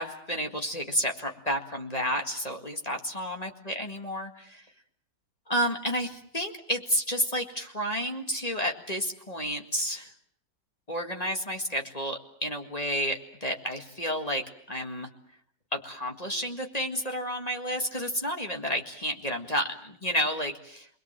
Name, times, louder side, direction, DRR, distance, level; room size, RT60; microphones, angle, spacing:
voice 1, 0.0-4.6 5.5-10.1 10.9-15.1 15.7-20.9, equal, 20° left, 3 dB, 1.9 m, -31 dB
29.0 x 21.5 x 7.6 m, 0.65 s
omnidirectional pair, 2.1 m